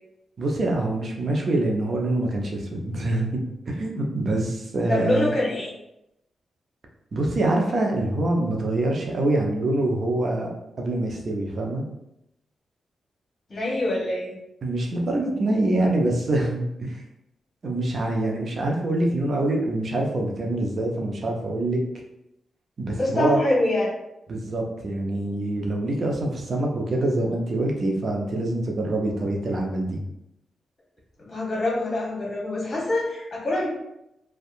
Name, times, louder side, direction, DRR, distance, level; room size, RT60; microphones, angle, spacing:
voice 1, 0.4-3.4 3.7-5.3 7.1-11.8 14.6-17.0 17.6-21.8 22.8-23.4 24.3-30.0, right 2 dB, 55° right, 1 dB, 0.6 m, -25 dB
voice 2, 4.9-5.7 13.5-14.3 22.9-23.9 31.2-33.7, left 1 dB, 40° left, -5 dB, 1.0 m, -25 dB
2.7 x 2.2 x 2.5 m, 0.85 s
supercardioid pair, 50°, 0 cm